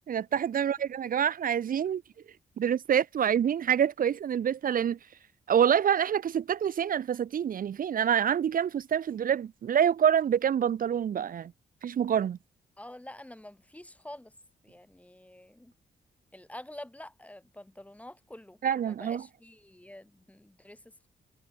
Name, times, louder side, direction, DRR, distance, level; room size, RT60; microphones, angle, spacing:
voice 1, 0.1-2.0 2.6-5.0 5.5-11.5 11.8-12.4 18.6-19.2, right 8 dB, 65° right, 1.1 m, -26 dB
voice 2, 12.8-14.3 14.6-15.7 16.3-18.6 18.9-20.8, left 1 dB, 10° left, 4.7 m, -47 dB
cardioid pair, 80°, 16 cm